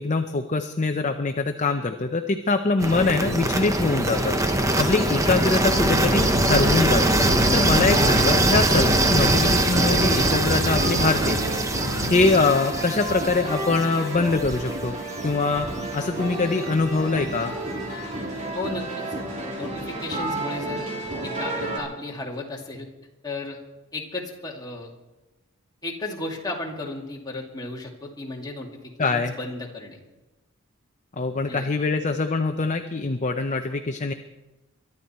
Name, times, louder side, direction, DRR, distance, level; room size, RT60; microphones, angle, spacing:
voice 1, 0.0-11.4 12.1-15.0 15.2-15.7 15.9-17.5 29.0-29.3 31.2-34.1, left 3 dB, 35° left, 6 dB, 0.6 m, -23 dB
sound 1, 2.8-14.7, right 1 dB, 15° right, 0.9 m, -22 dB
sound 2, 4.3-21.8, right 1 dB, 35° right, 3.1 m, -32 dB
sound 3, 5.4-12.6, equal, 50° right, 2.1 m, -30 dB
voice 2, 18.5-19.0 19.6-20.9 21.2-22.9 23.2-23.6 23.9-24.9 25.8-30.0 31.4-31.7, left 2 dB, 20° left, -2 dB, 2.3 m, -34 dB
23.0 x 12.0 x 4.3 m, 1.0 s
head